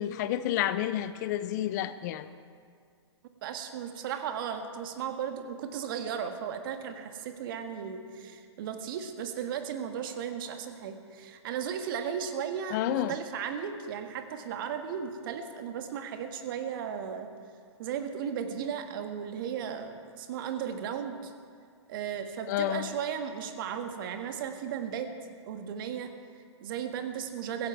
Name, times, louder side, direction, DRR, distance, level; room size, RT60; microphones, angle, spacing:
voice 1, 0.0-2.3 12.7-13.1 22.5-22.9, left 12 dB, 40° left, 14 dB, 0.6 m, -30 dB
voice 2, 3.4-17.3 17.8-21.3 21.9-25.1 25.4-27.7, right 8 dB, 50° right, 7 dB, 1.5 m, -35 dB
16.0 x 15.5 x 4.7 m, 2.1 s
hypercardioid pair, 120°, 15 cm